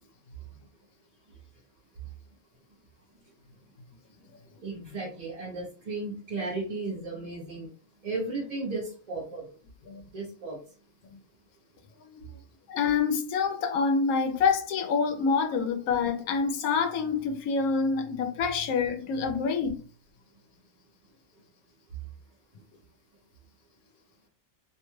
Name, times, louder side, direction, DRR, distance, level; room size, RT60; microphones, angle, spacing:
voice 1, 4.6-7.7 8.0-9.4 10.1-10.6, right 3 dB, 40° right, 0.6 m, -34 dB
voice 2, 12.7-19.8, left 5 dB, 85° left, 1.0 m, -26 dB
2.7 x 2.2 x 3.0 m
omnidirectional pair, 1.5 m